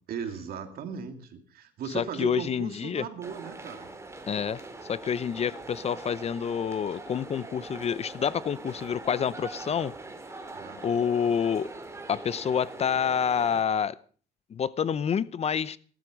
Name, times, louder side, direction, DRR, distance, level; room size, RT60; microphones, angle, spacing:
voice 1, 0.1-3.9 10.5-10.8, right 7 dB, 65° right, 7 dB, 2.8 m, -37 dB
voice 2, 1.9-3.1 4.3-4.6 4.9-9.9 10.8-11.7 12.1-13.9 14.5-15.8, left 7 dB, 40° left, 18 dB, 0.7 m, -28 dB
sound 1, 3.2-13.6, right 2 dB, 15° right, 2.7 m, -43 dB
18.5 x 13.0 x 5.2 m, 0.43 s
cardioid pair, 110°, 17 cm